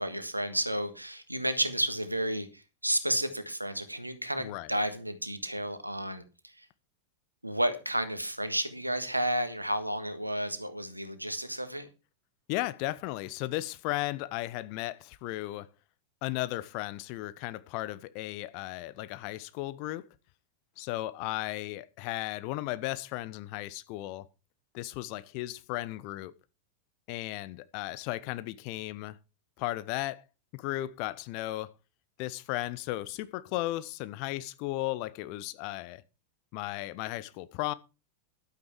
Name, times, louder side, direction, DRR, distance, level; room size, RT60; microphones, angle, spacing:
voice 1, 0.0-6.6 7.4-11.9, right 1 dB, 85° right, 1.5 m, -32 dB
voice 2, 4.4-4.7 12.5-15.7 16.2-20.1 20.8-24.3 24.7-26.3 27.1-29.2 29.6-30.2 30.5-31.7 32.2-36.0 36.5-37.7, left 17 dB, 45° left, 0.7 m, -35 dB
12.0 x 8.8 x 4.6 m
figure-of-eight pair, 90°, 0 cm